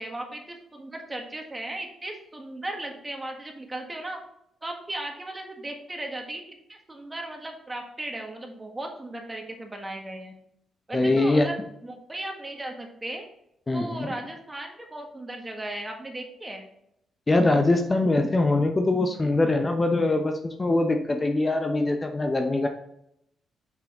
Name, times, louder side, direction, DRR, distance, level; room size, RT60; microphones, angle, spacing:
voice 1, 0.0-4.2 4.6-6.4 6.7-10.3 10.9-13.3 13.7-16.6, right 1 dB, 20° right, 3 dB, 1.6 m, -36 dB
voice 2, 10.9-11.5 13.7-14.1 17.3-22.7, left 2 dB, 25° left, 5 dB, 0.8 m, -23 dB
6.2 x 5.6 x 3.0 m, 0.76 s
supercardioid pair, 65°, 0 cm